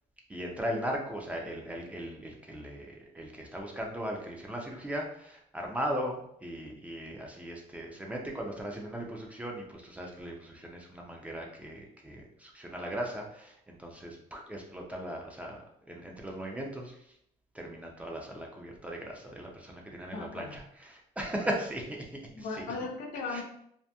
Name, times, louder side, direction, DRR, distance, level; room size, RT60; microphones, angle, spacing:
voice 1, 0.3-15.6 15.9-17.0 17.5-22.7 23.3-23.4, equal, 10° right, 0 dB, 0.3 m, -38 dB
voice 2, 20.1-20.6 22.3-23.4, left 4 dB, 80° left, 2 dB, 0.6 m, -37 dB
2.7 x 2.5 x 2.2 m, 0.72 s
cardioid pair, 160°, 14 cm